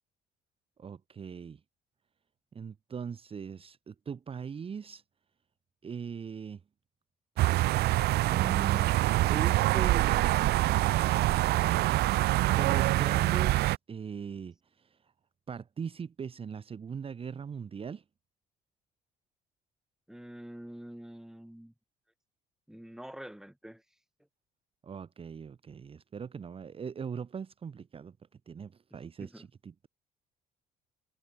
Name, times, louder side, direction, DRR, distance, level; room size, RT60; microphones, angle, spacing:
voice 1, 0.8-1.6 2.5-5.0 5.8-6.6 8.2-8.9 9.3-11.7 12.4-15.0 15.5-18.0 24.8-28.1 28.5-29.9, right 6 dB, 35° right, 1.5 m, -40 dB
sound 1, 7.4-13.8, right 17 dB, 75° right, 0.7 m, -25 dB
voice 2, 20.1-21.7 22.7-23.8 29.2-29.5, equal, 5° right, 7.4 m, -46 dB
cardioid pair, 110°, 17 cm